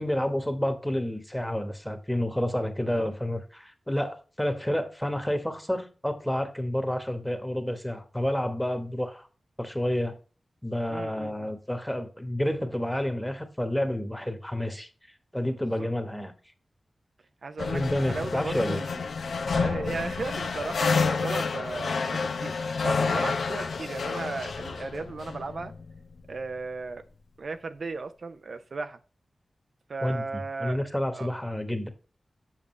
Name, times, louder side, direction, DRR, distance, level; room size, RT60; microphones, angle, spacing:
voice 1, 0.0-9.3 9.6-10.2 10.6-14.9 15.3-16.3 17.7-18.8 30.0-31.9, left 1 dB, 5° left, 1.3 m, -29 dB
voice 2, 10.9-11.5 15.6-15.9 17.4-19.0 19.5-22.5 22.8-25.7 26.3-27.0 27.4-29.0 29.9-30.8 31.1-31.3, right 3 dB, 65° right, 0.6 m, -36 dB
sound 1, 17.6-26.2, left 4 dB, 90° left, 0.8 m, -29 dB
7.5 x 6.5 x 3.2 m
wide cardioid pair, 80°, 0 cm